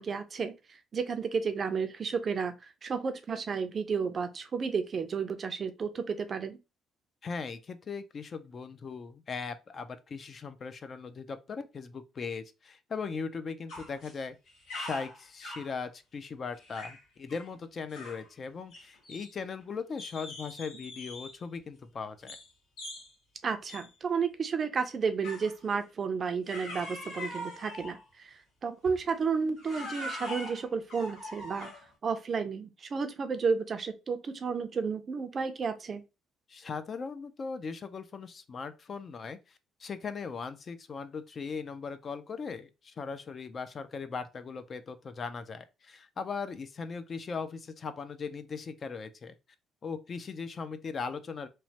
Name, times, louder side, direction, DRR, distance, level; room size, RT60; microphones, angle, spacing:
voice 1, 0.0-6.6 23.4-31.7 32.0-36.0, right 5 dB, 35° right, 0.4 m, -32 dB
voice 2, 7.2-14.4 14.8-22.4 36.5-39.4 39.8-49.3 49.8-51.5, left 5 dB, 35° left, 0.3 m, -39 dB
sound 1, 13.7-14.2 14.5-15.7 16.6-17.0 17.3-17.5 17.9-18.3 18.7-19.6 20.0-21.4 22.3-22.5 22.8-23.1 23.7-23.9 25.2-25.6 26.5-28.0 28.8-29.1 29.6-31.9, left 1 dB, 85° left, 1.6 m, -42 dB
3.1 x 2.1 x 2.7 m
cardioid pair, 130°, 0 cm